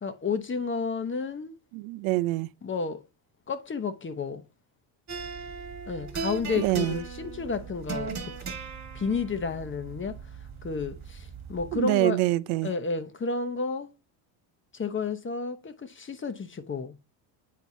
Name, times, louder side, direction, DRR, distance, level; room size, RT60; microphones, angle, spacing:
voice 1, 0.0-1.5 2.6-3.0 3.5-4.4 5.9-8.3 8.9-10.2 10.6-12.2 12.6-13.9 14.7-16.9, left 4 dB, 25° left, 0.8 m, -31 dB
voice 2, 1.7-2.5 6.6-7.0 11.7-12.7, right 18 dB, 80° right, 0.5 m, -25 dB
sound 1, 5.1-11.8, right 5 dB, 35° right, 1.7 m, -38 dB
8.5 x 4.5 x 2.7 m
supercardioid pair, 85°, 50 cm